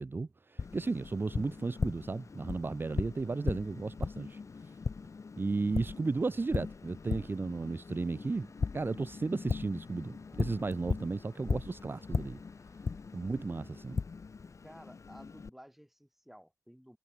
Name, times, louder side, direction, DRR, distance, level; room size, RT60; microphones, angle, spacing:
voice 1, 0.0-4.7 5.4-8.5 8.7-12.4 13.1-14.0, right 3 dB, 35° right, 0.4 m, -34 dB
Tap, 0.6-15.5, left 4 dB, 55° left, 0.5 m, -38 dB
voice 2, 14.6-17.0, equal, 5° right, 2.8 m, -54 dB
wide cardioid pair, 90°, 6 cm